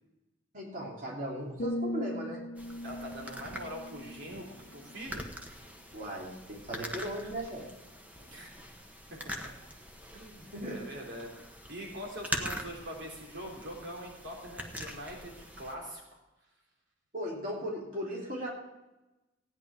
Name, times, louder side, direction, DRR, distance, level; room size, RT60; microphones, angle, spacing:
voice 1, 0.5-2.4 4.3-4.4 5.9-7.7 10.4-10.9 17.1-18.5, equal, 45° right, -3 dB, 3.4 m, -37 dB
sound 1, 1.6-5.6 5.9-6.3, left 1 dB, 45° left, 0.9 m, -40 dB
sound 2, 2.6-15.7, equal, 10° right, 1.2 m, -43 dB
voice 2, 2.8-5.3 8.2-8.5 9.2-9.5 10.1-11.3 11.7-16.0, equal, 65° right, -2 dB, 3.4 m, -43 dB
16.5 x 9.9 x 4.9 m, 1.0 s
head